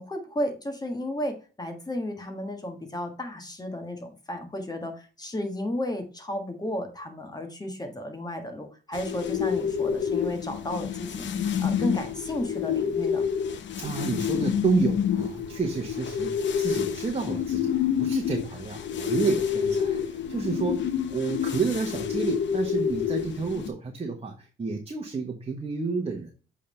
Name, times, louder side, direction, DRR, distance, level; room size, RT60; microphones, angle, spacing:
voice 1, 0.0-13.3, left 1 dB, 20° left, 5 dB, 1.6 m, -33 dB
sound 1, 8.9-23.7, left 8 dB, 60° left, 0.8 m, -28 dB
voice 2, 13.8-26.3, right 5 dB, 30° right, 2 dB, 1.2 m, -30 dB
7.6 x 3.7 x 4.3 m, 0.36 s
cardioid pair, 90°, 21 cm